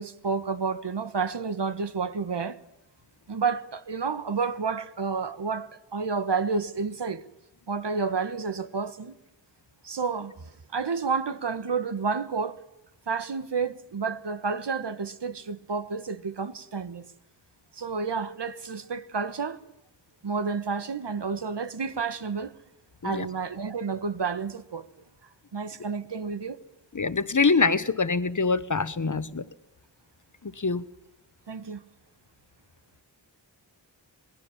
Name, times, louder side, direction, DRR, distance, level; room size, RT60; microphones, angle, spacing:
voice 1, 0.0-2.6 3.3-7.2 7.7-9.1 9.8-12.6 13.1-17.0 17.8-19.6 20.2-22.5 23.0-24.9 25.5-26.6 31.5-31.8, right 5 dB, 75° right, 1.4 m, -30 dB
voice 2, 26.9-29.4 30.4-30.8, left 4 dB, 45° left, 1.2 m, -24 dB
27.0 x 20.5 x 7.3 m
wide cardioid pair, 65°, 42 cm